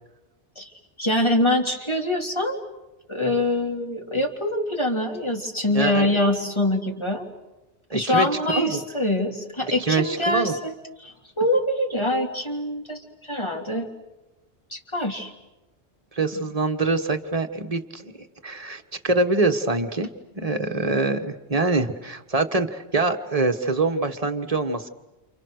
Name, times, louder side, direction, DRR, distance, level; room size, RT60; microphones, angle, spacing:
voice 1, 1.0-2.6 3.1-7.2 7.9-13.9 14.7-15.3, left 1 dB, 25° left, 1 dB, 3.3 m, -24 dB
voice 2, 5.7-6.2 7.9-8.8 9.8-10.5 16.1-18.1 18.4-20.1 20.3-24.9, right 3 dB, 35° right, 6 dB, 1.6 m, -24 dB
29.5 x 29.0 x 6.6 m, 1.0 s
omnidirectional pair, 1.2 m